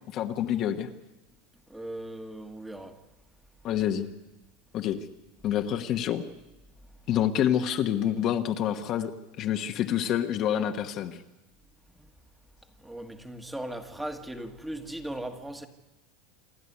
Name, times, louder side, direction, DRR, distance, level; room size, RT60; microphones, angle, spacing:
voice 1, 0.1-0.9 3.6-4.1 4.7-5.0 5.4-6.2 7.1-9.1 9.4-11.2, left 10 dB, 45° left, 5 dB, 1.3 m, -27 dB
voice 2, 1.7-3.0 12.8-15.7, right 1 dB, 5° right, 5 dB, 1.7 m, -38 dB
27.5 x 11.0 x 9.9 m, 1.0 s
supercardioid pair, 140°, 0 cm